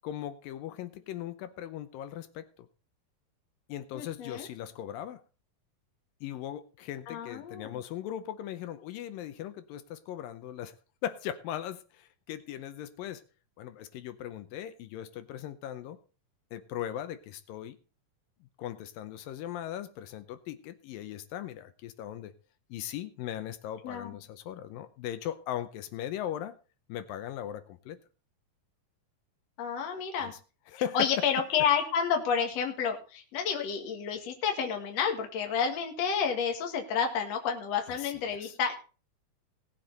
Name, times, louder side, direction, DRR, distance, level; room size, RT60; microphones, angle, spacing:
voice 1, 0.0-2.7 3.7-5.2 6.2-10.7 11.0-13.2 13.6-16.0 16.5-17.8 18.6-22.3 22.7-26.6 26.9-28.0 30.2-30.4 30.7-31.3 37.9-38.6, left 11 dB, 80° left, 11 dB, 2.4 m, -38 dB
voice 2, 3.9-4.5 7.1-7.8 23.8-24.2 29.6-30.3 30.9-38.7, left 7 dB, 55° left, 3 dB, 2.5 m, -30 dB
18.5 x 7.7 x 3.9 m, 0.36 s
omnidirectional pair, 4.2 m